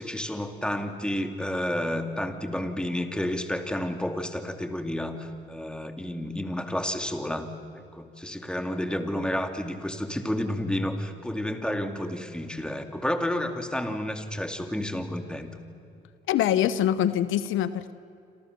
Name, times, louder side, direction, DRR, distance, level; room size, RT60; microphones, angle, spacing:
voice 1, 0.0-15.6, left 1 dB, 5° left, 6 dB, 2.6 m, -31 dB
voice 2, 16.3-17.9, left 11 dB, 85° left, 14 dB, 0.9 m, -24 dB
28.0 x 27.0 x 6.9 m, 2.6 s
cardioid pair, 90°, 20 cm